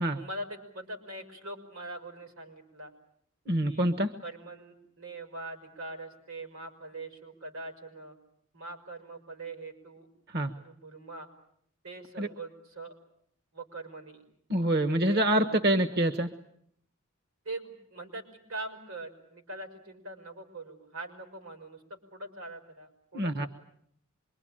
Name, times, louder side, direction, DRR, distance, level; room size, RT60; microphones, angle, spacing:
voice 1, 0.1-2.9 3.6-3.9 4.2-8.2 8.5-10.1 10.5-11.3 11.8-12.9 13.5-14.3 14.9-16.0 17.5-23.5, right 2 dB, 80° right, 5 dB, 5.2 m, -42 dB
voice 2, 3.5-4.1 10.3-10.5 12.2-12.3 14.5-16.3 23.1-23.5, right 1 dB, 50° right, 8 dB, 1.2 m, -26 dB
25.5 x 23.0 x 8.8 m, 0.69 s
head